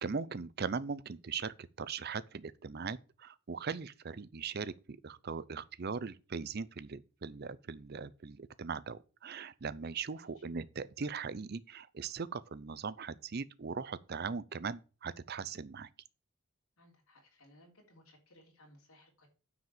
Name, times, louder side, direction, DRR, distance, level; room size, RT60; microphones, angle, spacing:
voice 1, 0.0-15.9, right 5 dB, 45° right, 0.5 m, -40 dB
voice 2, 10.1-10.4 16.8-19.3, left 1 dB, 75° left, 3.4 m, -62 dB
9.4 x 5.1 x 6.7 m
head